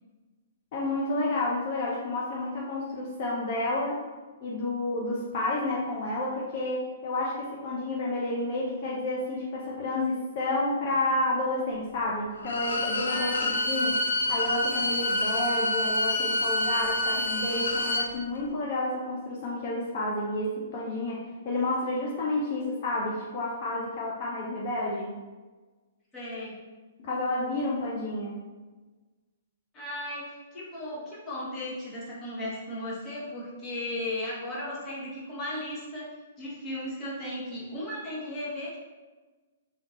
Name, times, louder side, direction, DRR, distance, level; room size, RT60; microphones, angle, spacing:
voice 1, 0.7-4.0 4.4-14.0 14.3-25.1 27.0-28.4, left 2 dB, 45° left, -4 dB, 0.7 m, -30 dB
Bowed string instrument, 12.4-18.1, left 1 dB, 85° left, 0.5 m, -27 dB
voice 2, 13.1-13.8 26.1-26.6 29.7-38.8, left 1 dB, 20° left, -6 dB, 1.2 m, -36 dB
3.7 x 3.4 x 3.1 m, 1.3 s
hypercardioid pair, 145°, 0 cm